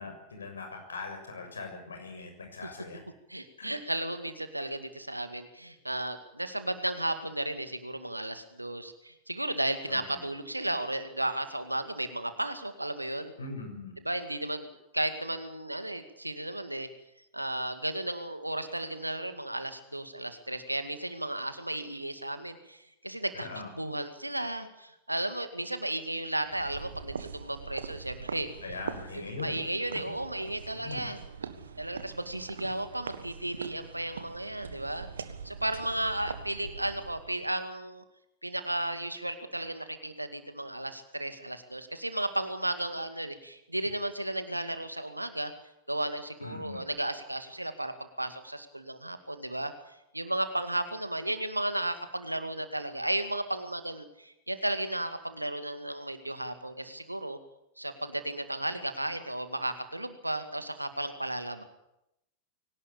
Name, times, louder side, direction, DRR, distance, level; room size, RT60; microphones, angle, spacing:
voice 1, 0.0-3.0 3.6-3.7 9.9-10.0 13.4-13.9 23.3-23.7 28.6-29.6 30.7-31.1 46.4-46.8, left 4 dB, 75° left, 5 dB, 6.9 m, -41 dB
voice 2, 3.3-13.3 14.0-16.9 17.3-23.5 23.8-28.8 29.1-31.2 31.8-35.1 35.4-38.0 38.4-45.5 45.9-47.9 48.2-49.7 50.1-57.4 57.8-61.6, right 1 dB, 85° right, 9 dB, 2.2 m, -34 dB
sound 1, 26.4-37.3, right 6 dB, 70° right, 1.7 m, -42 dB
23.0 x 18.5 x 8.6 m, 0.85 s
figure-of-eight pair, 90°, 0 cm